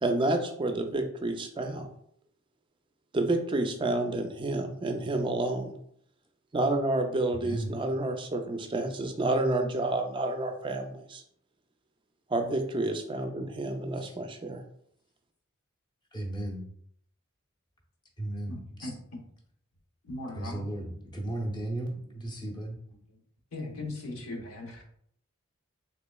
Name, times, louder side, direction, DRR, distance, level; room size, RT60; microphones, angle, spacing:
voice 1, 0.0-1.9 3.1-5.7 6.5-11.2 12.3-14.6, right 2 dB, 25° right, 6 dB, 0.3 m, -29 dB
voice 2, 7.3-7.7 14.0-14.2 16.1-16.6 18.2-18.9 20.3-20.9 21.1-22.8, right 1 dB, 20° left, -1 dB, 0.7 m, -35 dB
voice 3, 18.5-19.2 20.0-21.3 21.7-22.4 23.1-23.2 23.5-24.8, left 2 dB, 85° left, 1 dB, 0.8 m, -40 dB
3.5 x 3.0 x 2.2 m, 0.66 s
head